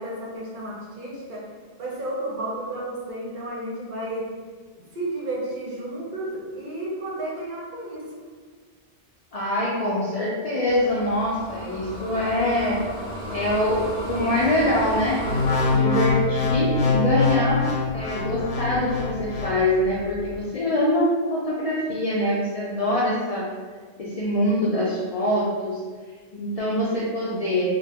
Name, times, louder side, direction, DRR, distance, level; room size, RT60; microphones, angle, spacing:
voice 1, 0.0-1.4 1.8-4.3 4.7-8.2, right 1 dB, 55° right, -5 dB, 0.6 m, -32 dB
voice 2, 9.3-12.8 13.3-17.6 17.9-23.5 24.0-25.8 26.3-27.6, left 1 dB, 65° left, -6 dB, 0.3 m, -24 dB
sound 1, 10.7-15.8, equal, 5° left, 0.5 m, -34 dB
sound 2, 15.2-19.6 20.1-20.3, left 4 dB, 85° left, 0.9 m, -23 dB
2.3 x 2.0 x 3.4 m, 1.5 s
omnidirectional pair, 1.2 m